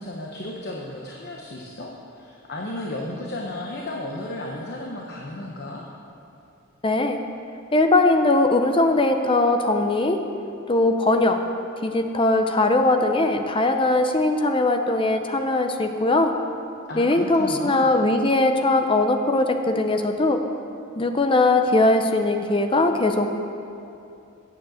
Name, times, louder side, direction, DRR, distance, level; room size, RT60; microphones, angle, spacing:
voice 1, 0.0-5.8 16.9-17.9, left 1 dB, 50° left, -1 dB, 0.9 m, -34 dB
voice 2, 6.8-7.2 7.7-10.2 10.7-11.4 11.8-16.3 17.0-20.4 21.0-23.3, left 2 dB, 25° left, 6 dB, 0.6 m, -20 dB
9.2 x 7.3 x 7.7 m, 2.8 s
head